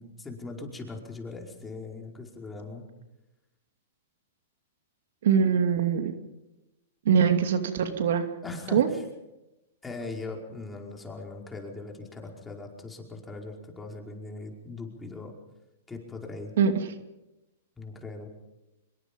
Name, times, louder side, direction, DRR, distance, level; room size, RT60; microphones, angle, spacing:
voice 1, 0.0-2.8 8.4-9.0 9.8-15.3 15.9-16.5 17.8-18.3, left 3 dB, 10° left, 1 dB, 5.2 m, -40 dB
voice 2, 5.2-6.1 7.0-8.2 8.7-8.9 16.6-16.7, right 7 dB, 70° right, 7 dB, 2.6 m, -22 dB
25.5 x 22.5 x 5.4 m, 0.96 s
hypercardioid pair, 125°, 0 cm